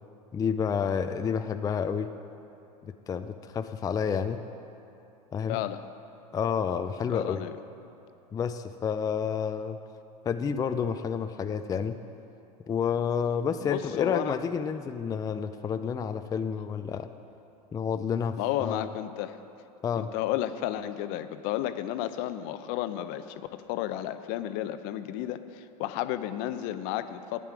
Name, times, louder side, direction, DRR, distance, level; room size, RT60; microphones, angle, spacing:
voice 1, 0.3-2.1 3.1-4.4 5.3-5.6 6.3-7.4 8.3-9.8 10.2-12.0 12.7-17.1 17.7-18.9 19.8-20.1, left 7 dB, 20° left, 9 dB, 0.4 m, -29 dB
voice 2, 5.5-5.8 7.1-7.5 13.6-14.4 18.4-19.4 20.0-27.4, left 12 dB, 55° left, 11 dB, 0.6 m, -32 dB
12.0 x 9.3 x 4.8 m, 2.7 s
hypercardioid pair, 90°, 20 cm